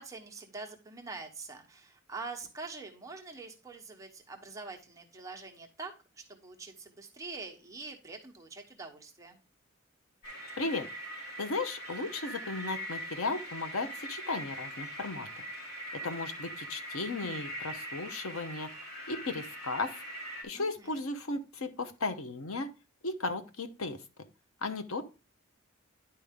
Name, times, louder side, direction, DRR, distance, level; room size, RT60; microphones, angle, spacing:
voice 1, 0.0-9.4 20.5-21.0, right 3 dB, 15° right, 2 dB, 0.9 m, -45 dB
sound 1, 10.2-20.4, right 1 dB, 50° left, 2.9 m, -42 dB
voice 2, 11.4-15.3 15.9-18.7 19.1-20.0 20.4-22.7 23.0-24.0 24.6-25.0, left 3 dB, 90° left, 9 dB, 0.9 m, -35 dB
10.0 x 4.6 x 3.6 m, 0.31 s
head